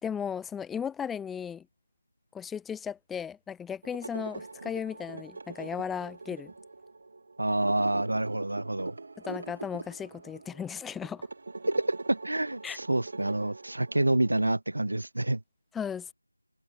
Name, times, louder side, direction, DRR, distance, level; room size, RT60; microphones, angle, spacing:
voice 1, 0.0-1.6 2.3-6.5 9.2-11.3 12.6-12.8 15.7-16.1, left 7 dB, ahead, 1.6 m, -36 dB
sound 1, 3.8-14.6, right 3 dB, 35° right, 4.6 m, -43 dB
voice 2, 7.4-8.9 11.7-15.4, right 1 dB, 70° right, 2.8 m, -28 dB
figure-of-eight pair, 175°, 0 cm